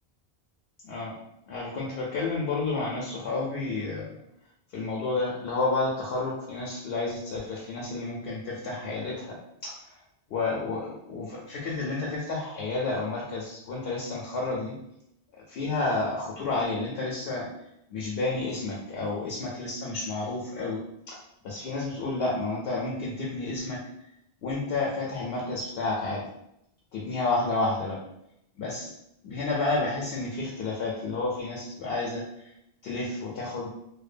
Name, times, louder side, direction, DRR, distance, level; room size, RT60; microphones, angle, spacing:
voice 1, 0.8-1.2 1.5-4.2 4.7-9.4 9.6-9.8 10.3-14.7 15.5-17.5 17.9-20.8 21.1-23.8 24.4-26.2 26.9-28.0 28.6-28.9 29.2-32.5 32.8-33.7, left 3 dB, 75° left, -4 dB, 0.8 m, -30 dB
2.7 x 2.1 x 2.5 m, 0.80 s
omnidirectional pair, 1.1 m